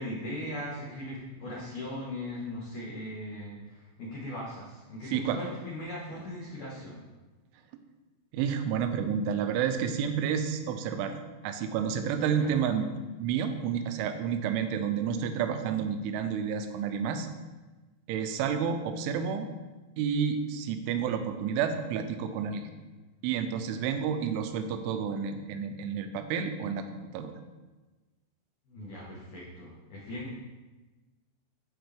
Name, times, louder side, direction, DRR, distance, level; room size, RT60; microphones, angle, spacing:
voice 1, 0.0-7.0 12.4-12.5 28.7-30.3, left 1 dB, 75° left, -6 dB, 1.8 m, -39 dB
voice 2, 8.3-12.9 13.2-17.3 18.1-19.5 20.0-22.7 23.2-27.3, right 7 dB, 80° right, 7 dB, 3.0 m, -30 dB
14.0 x 4.7 x 3.4 m, 1.2 s
omnidirectional pair, 5.9 m